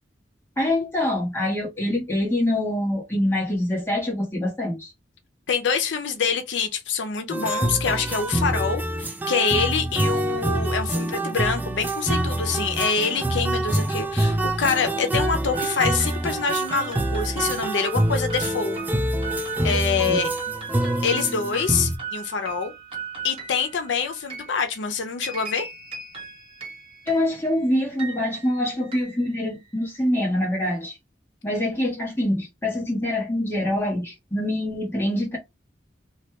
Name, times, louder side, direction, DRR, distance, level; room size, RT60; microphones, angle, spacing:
voice 1, 0.6-4.9 20.1-20.2 27.1-31.0 31.4-35.4, left 1 dB, 15° left, 1.3 m, -25 dB
voice 2, 5.5-18.8 19.6-20.3 21.0-22.7 23.2-25.7, left 5 dB, 85° left, 0.5 m, -25 dB
sound 1, 7.3-22.0, right 1 dB, 10° right, 0.3 m, -26 dB
sound 2, 15.5-30.0, right 6 dB, 30° right, 0.9 m, -37 dB
3.1 x 2.3 x 2.9 m
head